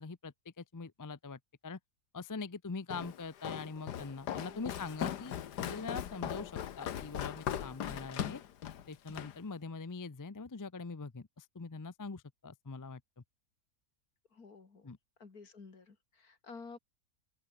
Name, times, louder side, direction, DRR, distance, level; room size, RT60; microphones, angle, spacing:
voice 1, 0.0-1.8 2.1-8.4 8.9-13.2 14.8-15.0, left 4 dB, 25° left, 0.4 m, -43 dB
Walk footsteps, 2.9-9.4, left 10 dB, 90° left, 1.6 m, -39 dB
voice 2, 4.3-4.8 14.3-14.9 15.2-16.8, left 4 dB, 65° left, 3.2 m, -52 dB
open air
omnidirectional pair, 1.7 m